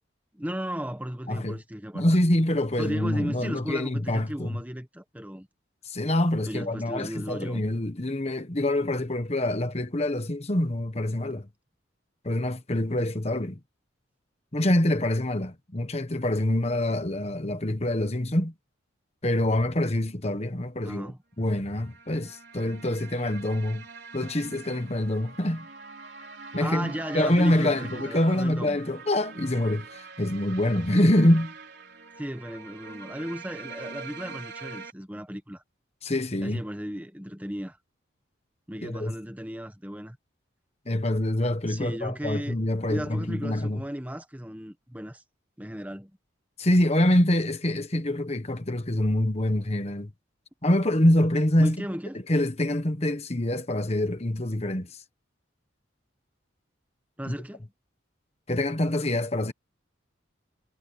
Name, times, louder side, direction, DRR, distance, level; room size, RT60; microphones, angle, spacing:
voice 1, 0.3-2.1 2.8-5.5 6.5-7.6 20.8-21.2 26.6-28.8 32.2-35.6 36.4-37.8 38.7-40.2 41.7-42.6 42.9-45.2 45.6-46.1 51.6-52.2 57.2-57.7, equal, 10° right, 1.3 m, -35 dB
voice 2, 1.3-1.6 1.9-4.6 5.8-11.5 12.2-13.6 14.5-18.5 19.2-21.1 21.4-23.9 24.1-25.7 26.5-31.5 36.0-36.6 38.8-39.1 40.9-43.8 46.6-50.1 50.6-51.8 52.3-55.0 57.3-57.4 58.5-59.5, left 1 dB, 30° left, 1.3 m, -25 dB
sound 1, 21.5-34.9, right 4 dB, 55° right, 5.2 m, -43 dB
head